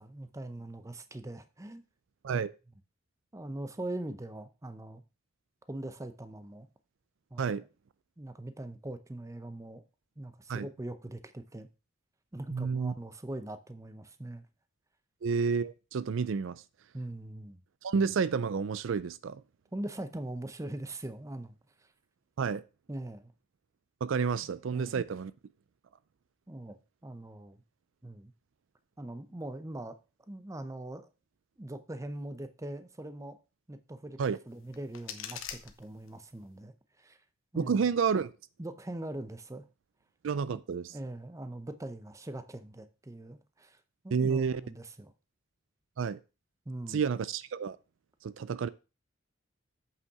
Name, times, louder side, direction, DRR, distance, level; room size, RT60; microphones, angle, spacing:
voice 1, 0.0-1.8 2.3-2.4 3.3-5.0 5.7-6.7 7.3-7.5 8.2-9.8 10.2-11.7 12.3-14.5 16.9-17.6 19.7-21.5 22.9-23.3 24.4-25.0 26.5-27.6 28.0-28.3 29.0-30.0 30.3-31.1 31.6-33.4 33.7-34.2 34.5-37.2 37.5-37.9 38.6-39.6 40.5-40.6 40.9-43.8 44.0-45.1 46.7-47.0, right 1 dB, 15° right, 0.6 m, -41 dB
voice 2, 12.5-12.9 15.2-16.6 17.8-19.4 22.4-22.6 24.0-25.3 34.2-34.4 37.6-38.3 40.2-41.0 44.1-44.6 46.0-46.2 46.9-47.8 48.2-48.7, right 5 dB, 65° right, 0.4 m, -30 dB
sound 1, 34.5-36.5, left 8 dB, 75° left, 1.1 m, -45 dB
7.9 x 5.8 x 4.8 m
head